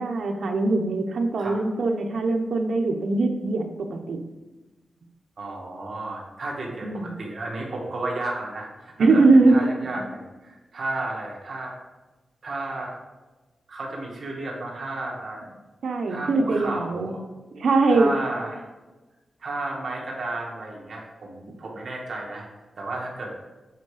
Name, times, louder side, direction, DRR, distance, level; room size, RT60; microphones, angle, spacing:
voice 1, 0.0-4.2 6.8-7.1 9.0-9.7 9.9-10.0 15.8-17.1 17.5-18.1, right 3 dB, 80° right, 4 dB, 0.9 m, -21 dB
voice 2, 5.4-11.8 12.4-13.0 13.7-15.5 16.1-17.2 17.9-18.6 19.4-22.5 22.8-23.3, right 2 dB, 60° right, -2 dB, 2.0 m, -33 dB
8.1 x 4.7 x 5.0 m, 1.2 s
wide cardioid pair, 95°, 0 cm